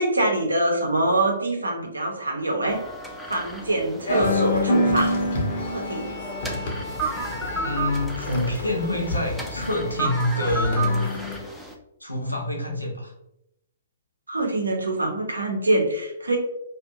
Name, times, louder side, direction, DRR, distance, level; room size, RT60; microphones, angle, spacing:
voice 1, 0.0-2.8 3.3-5.2 5.7-6.1 14.3-16.4, right 1 dB, 75° right, 1 dB, 0.6 m, -24 dB
sound 1, 2.7-11.7, right 2 dB, ahead, 0.3 m, -34 dB
sound 2, 4.1-11.4, left 1 dB, 50° left, 0.6 m, -28 dB
voice 2, 7.6-11.1 12.0-13.1, left 1 dB, 90° left, 0 dB, 0.6 m, -26 dB
2.5 x 2.1 x 2.7 m, 0.82 s
figure-of-eight pair, 120°, 0 cm